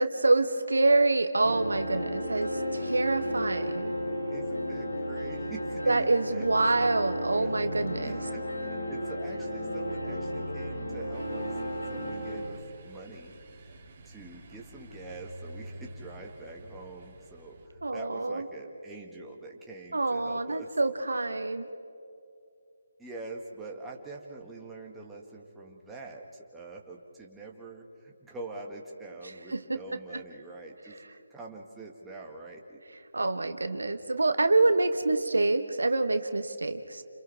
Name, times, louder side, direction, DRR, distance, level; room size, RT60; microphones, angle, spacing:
voice 1, 0.0-3.9 5.9-8.2 17.8-18.4 19.9-21.7 29.5-29.6 33.1-37.0, right 2 dB, 70° right, 9 dB, 1.2 m, -26 dB
sound 1, 1.4-12.5, equal, 85° left, 6.4 m, -34 dB
voice 2, 2.3-2.9 3.6-3.8 4.3-7.7 8.0-11.5 11.9-13.3 14.0-20.7 23.0-32.8, right 3 dB, 5° right, -2 dB, 1.9 m, -45 dB
sound 2, 11.1-17.7, right 1 dB, 35° right, 3.0 m, -49 dB
29.5 x 28.0 x 3.6 m, 2.5 s
figure-of-eight pair, 150°, 0 cm